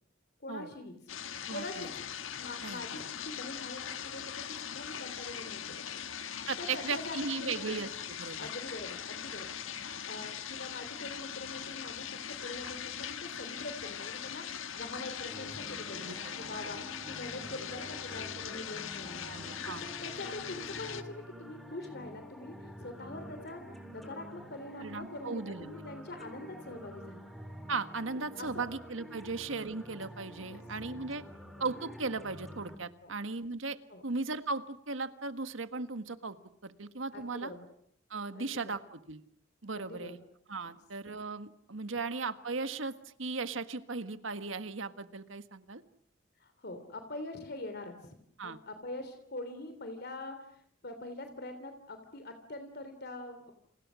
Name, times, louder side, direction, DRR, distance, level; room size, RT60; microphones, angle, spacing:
voice 1, 0.4-0.9 1.5-1.9 2.4-6.0 6.6-7.8 8.4-9.6 10.0-19.3 19.8-23.6 23.9-27.3 28.4-28.6 29.2-29.4 30.5-30.6 33.0-33.1 33.9-34.0 37.1-37.7 38.3-38.8 39.7-40.2 40.6-40.7 46.4-48.1 48.4-53.6, left 2 dB, 55° left, 8 dB, 3.2 m, -44 dB
sound 1, 1.1-21.0, left 8 dB, 90° left, 1.5 m, -41 dB
voice 2, 1.5-1.9 2.6-2.8 6.5-8.5 16.0-16.1 16.6-16.7 19.2-19.8 24.8-25.9 27.7-31.2 31.6-36.4 36.6-37.5 38.1-39.2 39.6-40.2 40.5-45.8 48.4-48.6, right 4 dB, 80° right, 10 dB, 1.6 m, -37 dB
sound 2, 15.3-32.7, equal, ahead, 4.0 m, -48 dB
29.5 x 29.0 x 6.3 m, 0.66 s
head